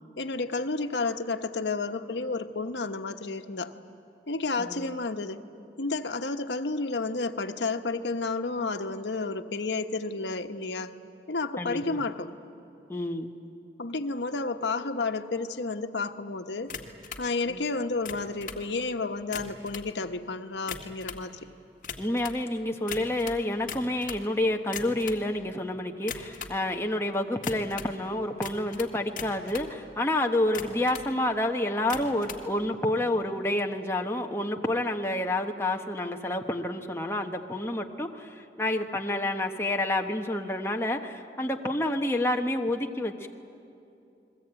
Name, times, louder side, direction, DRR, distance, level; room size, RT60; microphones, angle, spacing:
voice 1, 0.2-3.7 4.3-5.4 5.8-10.9 11.3-12.3 13.8-16.7 17.2-21.4, left 3 dB, 90° left, 6 dB, 1.1 m, -31 dB
voice 2, 11.6-12.0 12.9-13.3 17.5-17.6 22.0-43.3, left 1 dB, 15° left, 2 dB, 1.1 m, -29 dB
sound 1, 16.7-17.3 17.9-18.6 19.2-19.9 20.5-21.3 21.8-22.4 22.9-24.3 24.6-25.2 26.0-26.6 27.4-28.0 28.4-29.7 30.4-31.1 31.8-32.4, left 6 dB, 45° left, 1.9 m, -39 dB
29.5 x 21.5 x 8.9 m, 2.7 s
head